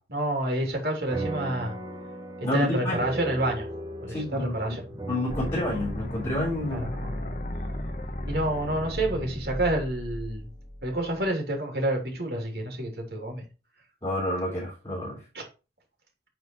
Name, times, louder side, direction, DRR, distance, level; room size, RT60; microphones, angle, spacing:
voice 1, 0.1-1.7 2.5-3.7 4.0-4.8 6.7-7.1 8.3-10.5 10.8-13.4 15.3-15.4, right 1 dB, 65° right, 3.1 m, -28 dB
sound 1, 1.1-9.9, right 1 dB, 20° right, 1.2 m, -39 dB
voice 2, 2.4-3.0 4.1-4.5 5.1-6.9 14.0-15.2, left 1 dB, 25° left, 3.7 m, -29 dB
sound 2, 5.3-11.3, left 1 dB, 45° left, 1.1 m, -35 dB
9.1 x 4.6 x 4.5 m
head